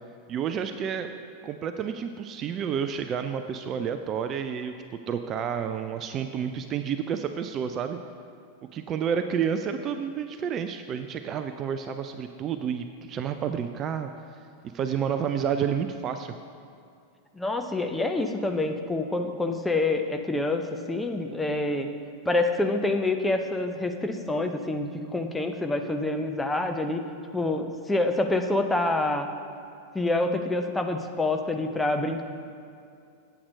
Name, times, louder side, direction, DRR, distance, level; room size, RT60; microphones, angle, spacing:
voice 1, 0.3-1.1 1.4-4.7 5.1-8.0 8.7-14.1 14.7-16.3, right 7 dB, 30° right, 8 dB, 0.4 m, -30 dB
voice 2, 17.4-21.9 22.3-27.0 27.3-29.3 29.9-32.2, left 2 dB, 5° left, 5 dB, 0.7 m, -27 dB
8.6 x 7.9 x 5.3 m, 2.5 s
figure-of-eight pair, 90°, 0 cm